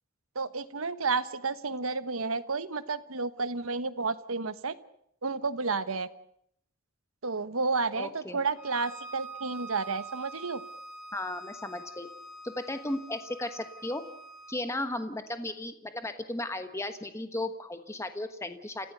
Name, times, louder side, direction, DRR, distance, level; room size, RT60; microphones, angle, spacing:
voice 1, 0.3-4.8 5.2-6.1 7.2-10.6, right 4 dB, 85° right, 13 dB, 1.2 m, -31 dB
voice 2, 8.0-8.4 11.1-12.1 12.4-14.0 14.5-18.9, left 1 dB, 15° left, 8 dB, 1.3 m, -35 dB
Bowed string instrument, 8.5-14.6, right 2 dB, 80° left, 3.7 m, -45 dB
30.0 x 15.5 x 6.8 m, 0.71 s
head